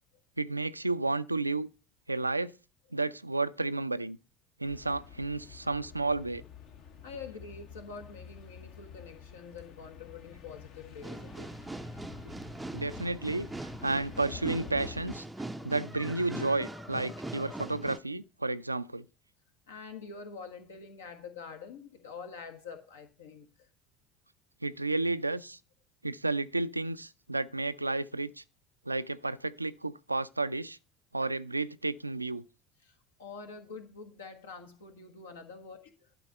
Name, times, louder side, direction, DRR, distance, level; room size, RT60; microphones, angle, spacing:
voice 1, 0.4-1.7 2.1-2.5 2.9-4.2 4.6-6.4 12.7-13.5 13.8-15.2 15.6-19.1 24.6-25.6 26.0-28.4 28.9-30.8 31.1-32.4, right 2 dB, 85° right, 0.3 m, -32 dB
sound 1, 4.6-15.2, left 7 dB, 50° left, 1.0 m, -49 dB
voice 2, 7.0-11.5 19.7-23.7 32.8-36.1, left 5 dB, 70° left, 1.4 m, -46 dB
sound 2, 11.0-18.0, right 2 dB, 10° right, 0.5 m, -41 dB
sound 3, 15.1-16.2 16.6-18.0, left 5 dB, 30° left, 0.8 m, -51 dB
12.0 x 4.1 x 5.5 m
figure-of-eight pair, 65°, 0 cm